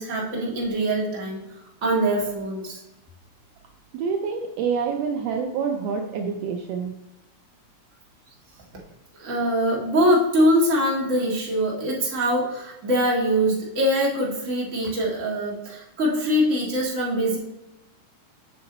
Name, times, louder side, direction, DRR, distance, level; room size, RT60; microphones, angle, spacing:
voice 1, 0.0-1.4 1.8-2.8 9.2-17.4, equal, 30° right, -4 dB, 1.5 m, -23 dB
voice 2, 3.9-6.9, right 6 dB, 85° right, 4 dB, 1.4 m, -27 dB
7.3 x 6.0 x 3.9 m, 0.91 s
omnidirectional pair, 3.5 m